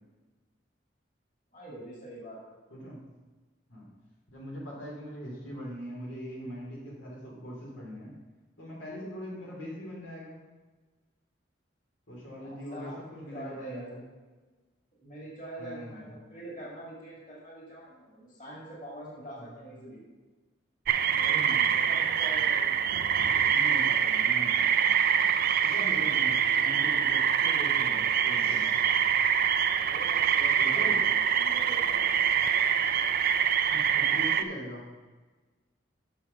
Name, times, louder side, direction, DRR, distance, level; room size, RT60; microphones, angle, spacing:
voice 1, 1.5-2.6 12.4-14.3 15.0-20.0 21.0-23.4 29.8-32.3, right 1 dB, 40° left, -6 dB, 2.3 m, -45 dB
voice 2, 2.7-3.0 3.7-3.9 4.3-8.2 8.6-10.4 12.1-14.0 15.6-16.2 19.4-19.5 21.2-21.7 23.5-25.4 25.6-28.7 30.6-31.0 33.7-34.9, equal, 90° left, -4 dB, 3.0 m, -41 dB
sound 1, 20.9-34.4, right 8 dB, 50° right, 0.4 m, -25 dB
6.9 x 6.1 x 5.8 m, 1.3 s
head